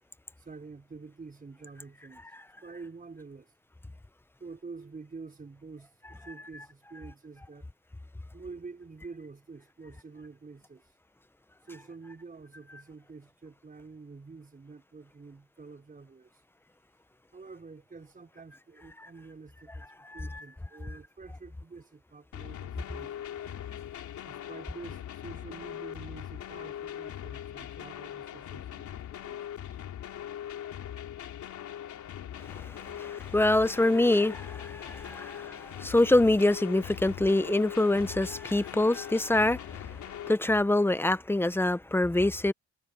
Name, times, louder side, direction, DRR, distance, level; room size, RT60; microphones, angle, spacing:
voice 1, 0.4-2.3 2.6-3.5 4.4-7.7 8.3-11.0 11.6-16.4 17.3-23.5 24.2-29.8, right 4 dB, 30° right, 5.3 m, -47 dB
voice 2, 20.1-20.4 32.5-39.8 40.3-42.5, left 2 dB, 5° left, 0.8 m, -25 dB
sound 1, 22.3-40.3, left 10 dB, 70° left, 4.0 m, -41 dB
cardioid pair, 90°, 30 cm